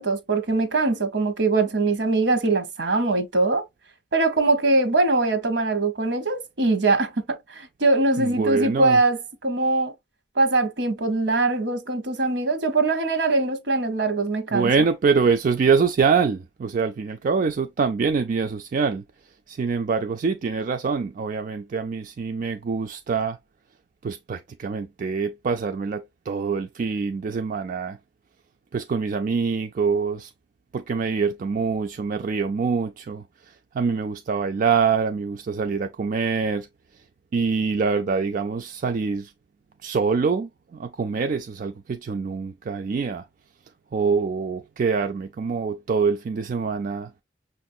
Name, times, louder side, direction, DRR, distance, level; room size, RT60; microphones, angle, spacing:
voice 1, 0.0-3.6 4.1-9.9 10.4-14.7, right 3 dB, 75° right, 1.0 m, -22 dB
voice 2, 8.2-9.0 14.5-23.4 24.0-28.0 28.7-30.3 30.7-36.7 36.9-37.0 37.3-39.3 39.8-43.3 43.9-47.1, right 5 dB, 50° right, 0.3 m, -25 dB
5.9 x 2.5 x 2.6 m
head